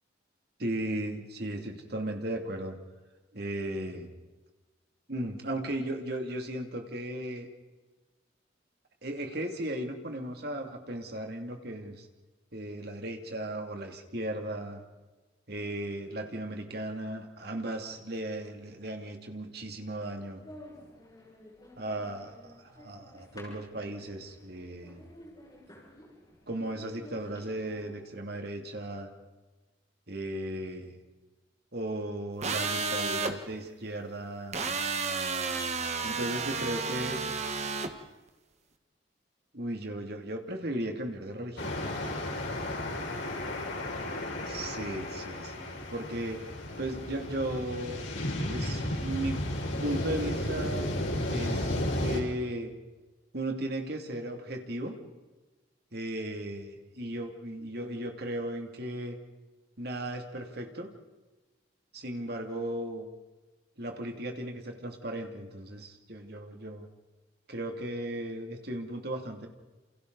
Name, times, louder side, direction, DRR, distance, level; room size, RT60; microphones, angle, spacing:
voice 1, 0.6-2.8 3.3-4.1 5.1-7.5 9.0-12.0 12.5-14.8 15.5-20.4 21.8-25.0 26.5-29.1 30.1-30.9 31.7-34.6 36.0-37.2 39.5-41.8 44.5-46.4 46.7-48.0 48.5-49.4 49.8-50.9 51.3-52.7 53.3-54.9 55.9-59.2 59.8-60.9 61.9-63.1 63.8-66.9 67.5-69.5, right 1 dB, 55° right, 3 dB, 2.8 m, -36 dB
sound 1, 20.3-27.9, left 1 dB, 20° left, 6.3 m, -52 dB
sound 2, 32.4-33.3 34.5-37.9, right 4 dB, 35° right, 1.6 m, -31 dB
sound 3, 41.6-52.2, left 1 dB, 90° left, 6.1 m, -33 dB
29.0 x 28.5 x 4.1 m, 1.2 s
head